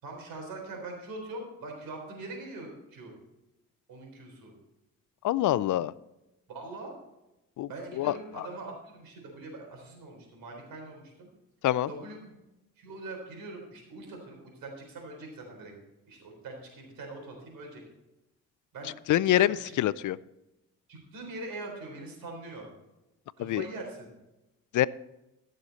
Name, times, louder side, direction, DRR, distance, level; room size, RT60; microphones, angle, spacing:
voice 1, 0.0-3.1 3.9-4.5 6.5-6.9 7.7-11.3 11.9-12.4 12.8-15.7 16.1-17.8 18.7-19.8 20.9-22.7 23.4-24.1, right 2 dB, 75° right, 1 dB, 3.9 m, -42 dB
voice 2, 5.2-5.9 7.6-7.7 8.0-8.1 11.6-11.9 19.1-20.2 23.4-23.6 24.7-24.9, left 13 dB, 65° left, 19 dB, 0.4 m, -25 dB
15.0 x 6.5 x 4.1 m, 0.96 s
cardioid pair, 80°, 34 cm